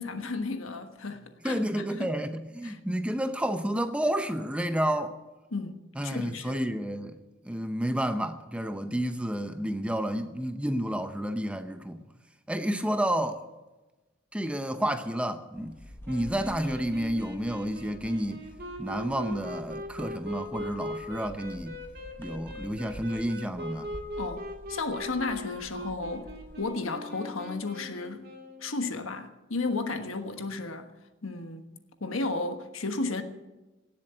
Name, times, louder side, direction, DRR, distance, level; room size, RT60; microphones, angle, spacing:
voice 1, 0.0-2.1 2.6-2.8 5.5-6.5 24.2-26.3 26.6-28.3 28.6-30.9 31.2-31.6 32.0-33.2, left 3 dB, 85° left, 1.4 m, -33 dB
voice 2, 1.4-5.1 6.0-7.2 7.4-12.0 12.5-13.4 14.3-15.8 16.1-18.5 18.8-21.8 22.2-23.9, equal, 5° right, 0.7 m, -30 dB
sound 1, 15.5-26.6, left 1 dB, 10° left, 1.3 m, -49 dB
sound 2, 16.0-28.7, equal, 50° right, 2.3 m, -40 dB
17.5 x 7.6 x 9.6 m
head